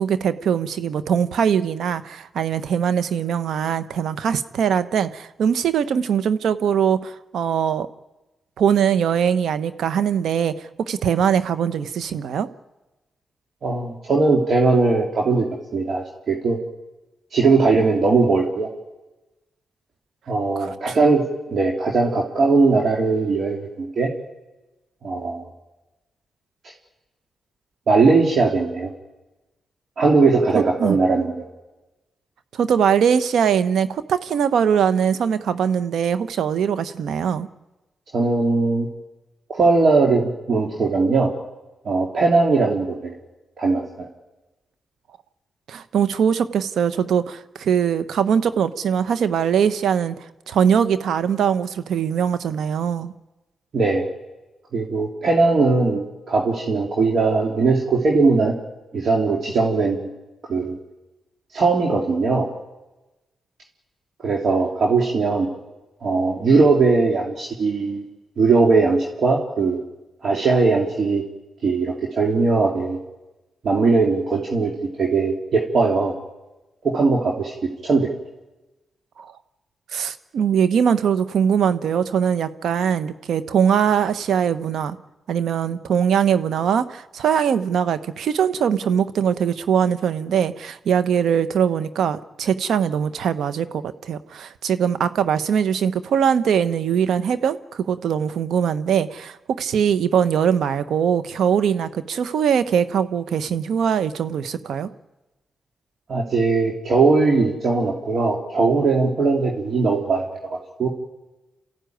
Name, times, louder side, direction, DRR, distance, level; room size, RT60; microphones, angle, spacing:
voice 1, 0.0-7.9 8.6-12.5 20.6-21.0 30.8-31.0 32.5-37.5 45.7-50.1 50.5-53.1 79.2-79.3 79.9-85.0 85.3-104.9, right 8 dB, 80° right, 12 dB, 1.0 m, -21 dB
voice 2, 13.6-15.5 15.7-16.6 17.3-18.7 20.3-24.1 25.0-25.5 27.9-28.9 30.0-31.4 38.1-38.9 39.5-41.3 41.8-43.2 43.6-44.1 53.7-54.0 54.7-58.5 58.9-60.1 60.5-60.8 61.5-62.5 64.2-65.5 66.0-68.0 68.4-69.8 70.2-71.2 71.6-73.0 73.6-74.7 75.0-76.1 76.8-77.5 77.8-78.1 106.1-110.9, right 3 dB, 60° right, -1 dB, 3.0 m, -19 dB
28.5 x 14.5 x 9.4 m, 1.1 s
supercardioid pair, 50°, 0 cm